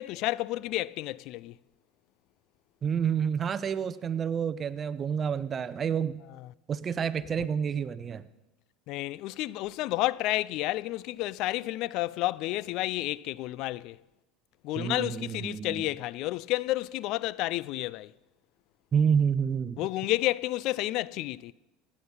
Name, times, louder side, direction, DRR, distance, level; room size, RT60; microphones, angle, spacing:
voice 1, 0.0-1.5 6.4-6.5 7.4-7.5 8.9-14.0 14.6-18.1 19.8-21.5, left 17 dB, 60° left, 0.3 m, -31 dB
voice 2, 2.8-6.2 6.7-8.2 14.8-15.9 18.9-19.8, right 7 dB, 35° right, 0.7 m, -29 dB
17.0 x 8.7 x 5.5 m
hypercardioid pair, 90°, 0 cm